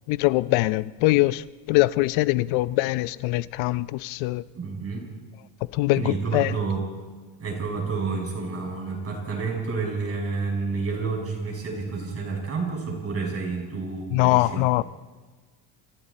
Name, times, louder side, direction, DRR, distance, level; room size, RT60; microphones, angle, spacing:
voice 1, 0.1-4.4 5.7-6.6 14.1-14.8, left 19 dB, 90° left, 0.8 m, -23 dB
voice 2, 4.5-5.1 6.0-6.8 7.4-14.6, right 4 dB, 30° right, 7.1 m, -29 dB
28.5 x 27.5 x 4.3 m
cardioid pair, 150°, 45 cm